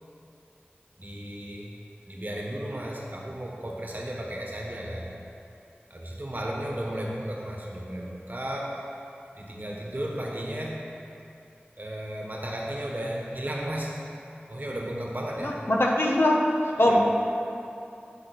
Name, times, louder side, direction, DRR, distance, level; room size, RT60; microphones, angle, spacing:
voice 1, 1.0-1.7 2.0-5.1 5.9-8.8 9.3-10.9 11.8-14.0 14.5-15.6 16.9-17.0, right 1 dB, 50° right, -2 dB, 1.3 m, -34 dB
voice 2, 15.4-16.4 16.8-17.0, left 1 dB, 70° left, -1 dB, 1.0 m, -22 dB
9.9 x 5.4 x 4.2 m, 2.7 s
wide cardioid pair, 45°, 4 cm